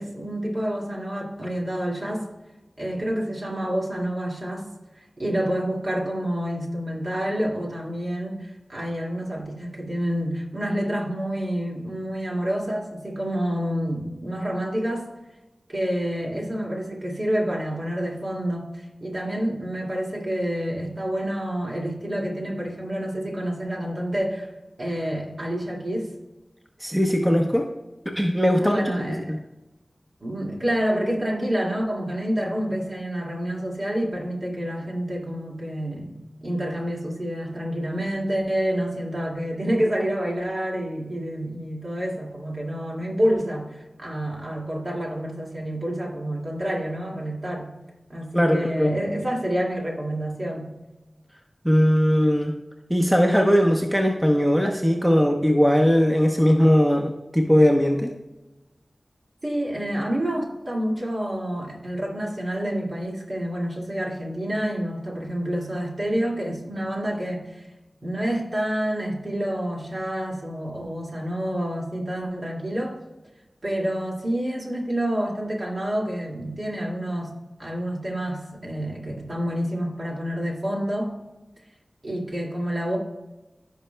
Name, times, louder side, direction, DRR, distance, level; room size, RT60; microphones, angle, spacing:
voice 1, 0.0-2.3 2.8-4.7 5.2-15.1 15.7-24.5 24.8-26.1 28.6-29.3 30.2-47.7 48.1-50.7 59.4-67.7 68.0-73.0 73.6-77.3 77.6-81.1 82.0-83.0, equal, 45° right, -2 dB, 2.1 m, -28 dB
voice 2, 26.8-27.7 28.2-29.4 48.3-48.9 51.6-52.5 52.9-58.1, equal, 5° right, 1 dB, 0.8 m, -19 dB
15.5 x 5.5 x 2.2 m, 1.1 s
wide cardioid pair, 80°, 0 cm